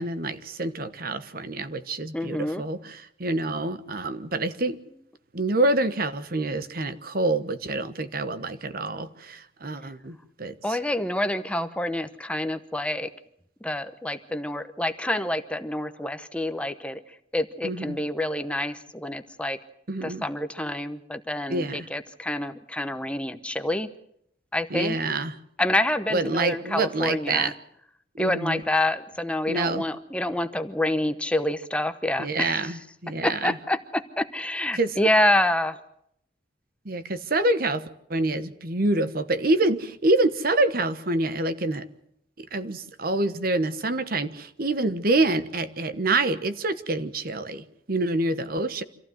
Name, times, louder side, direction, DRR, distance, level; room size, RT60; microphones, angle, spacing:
voice 1, 0.0-4.8 5.3-10.8 17.6-18.0 19.9-20.2 21.5-21.9 24.7-25.3 26.1-27.5 28.2-28.6 29.5-29.8 32.2-33.5 34.7-35.0 36.8-37.8 38.1-41.8 42.4-48.8, right 2 dB, 55° right, 11 dB, 1.2 m, -26 dB
voice 2, 2.1-2.6 10.6-13.1 13.6-17.0 17.3-19.6 20.0-23.9 24.5-25.0 25.6-27.5 28.2-32.7 33.2-35.8, left 1 dB, 5° left, 9 dB, 0.9 m, -27 dB
26.0 x 15.0 x 7.9 m, 0.73 s
head